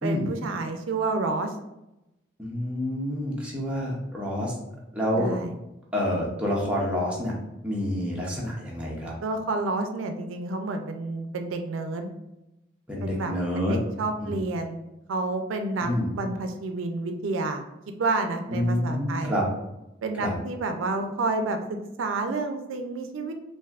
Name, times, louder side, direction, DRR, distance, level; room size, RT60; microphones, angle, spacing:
voice 1, 0.0-1.5 5.1-5.5 9.2-12.1 13.0-14.8 15.1-17.6 18.0-19.3 20.0-23.3, right 3 dB, 85° right, 6 dB, 0.4 m, -29 dB
voice 2, 2.4-4.6 4.9-5.3 5.9-7.3 7.6-9.1 12.9-13.8 14.2-14.3 15.8-16.1 18.5-19.4 20.2-20.3, equal, 5° right, -4 dB, 0.6 m, -28 dB
3.3 x 2.5 x 2.3 m, 0.91 s
head